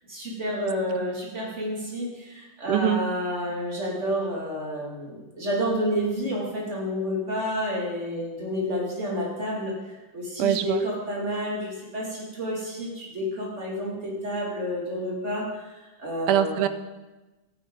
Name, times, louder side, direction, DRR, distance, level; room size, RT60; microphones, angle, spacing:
voice 1, 0.1-9.7 10.1-16.6, equal, 30° right, -3 dB, 2.7 m, -30 dB
voice 2, 2.7-3.0 10.4-10.8 16.3-16.7, right 10 dB, 80° right, 11 dB, 1.5 m, -22 dB
13.5 x 9.7 x 3.9 m, 1.1 s
omnidirectional pair, 2.4 m